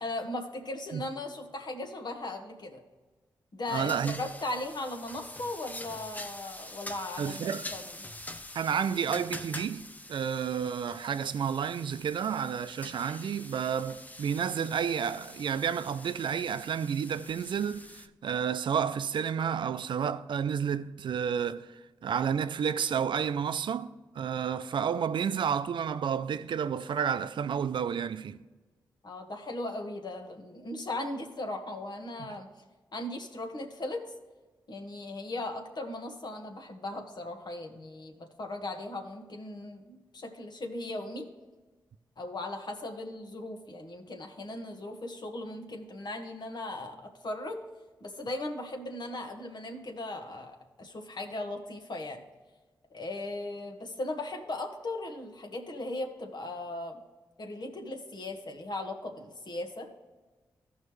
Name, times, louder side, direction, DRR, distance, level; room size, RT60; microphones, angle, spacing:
voice 1, 0.0-2.8 3.5-7.8 29.0-32.5 32.9-34.1 34.7-41.3 42.2-46.9 47.2-47.6 48.0-52.2 52.9-57.0 57.4-59.9, left 2 dB, 55° left, 1.5 m, -38 dB
sound 1, 3.7-18.1, left 1 dB, 20° left, 0.7 m, -45 dB
voice 2, 3.7-4.2 7.2-7.7 8.5-9.8 10.1-28.4, right 7 dB, 65° right, 0.4 m, -31 dB
14.0 x 5.5 x 3.2 m
supercardioid pair, 45°, 9 cm